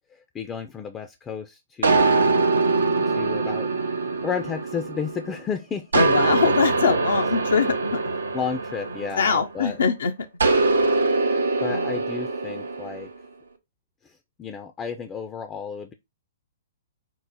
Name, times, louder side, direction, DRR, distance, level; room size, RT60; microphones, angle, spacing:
voice 1, 0.1-2.5 2.9-3.7 4.2-6.0 6.6-6.9 8.3-9.8 11.1-13.1 14.0-15.9, left 6 dB, 20° left, 0.4 m, -33 dB
sound 1, 1.8-5.4 5.9-9.6 10.4-13.1, right 3 dB, 80° right, 0.6 m, -23 dB
voice 2, 5.9-8.2 9.2-10.1 11.7-12.0, left 5 dB, 75° left, 0.5 m, -23 dB
4.7 x 2.0 x 4.0 m
hypercardioid pair, 120°, 0 cm